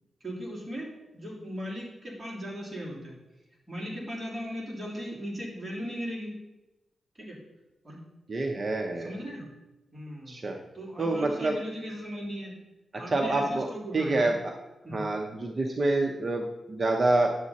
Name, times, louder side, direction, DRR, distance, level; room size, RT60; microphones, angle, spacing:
voice 1, 0.2-3.2 3.7-6.4 7.2-7.4 7.8-8.0 9.0-9.5 9.9-10.4 10.7-12.6 13.0-14.4 14.8-15.0, equal, 15° right, -5 dB, 3.3 m, -38 dB
voice 2, 8.3-9.1 10.3-10.6 11.0-11.6 13.1-13.7 13.9-14.5 14.9-17.4, right 2 dB, 40° right, 2 dB, 0.8 m, -27 dB
10.5 x 7.3 x 4.1 m, 1.0 s
wide cardioid pair, 115°, 0 cm